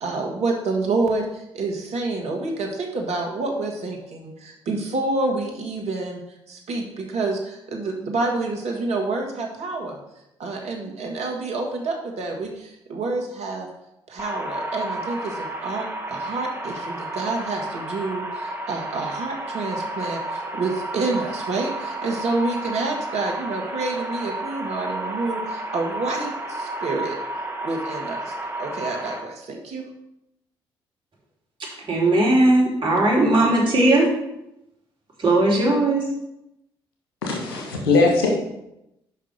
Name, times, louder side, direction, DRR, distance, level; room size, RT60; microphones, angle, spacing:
voice 1, 0.0-6.2 6.5-10.0 10.4-13.7 14.1-27.2 27.6-29.9, right 3 dB, 60° right, 1.6 m, -28 dB
sound 1, 14.2-29.2, right 1 dB, 15° right, 1.2 m, -31 dB
voice 2, 31.9-34.1 35.2-36.0, right 2 dB, 40° right, 3.0 m, -18 dB
voice 3, 37.2-38.3, left 3 dB, 85° left, 1.4 m, -20 dB
5.8 x 5.4 x 5.2 m
hypercardioid pair, 45°, 12 cm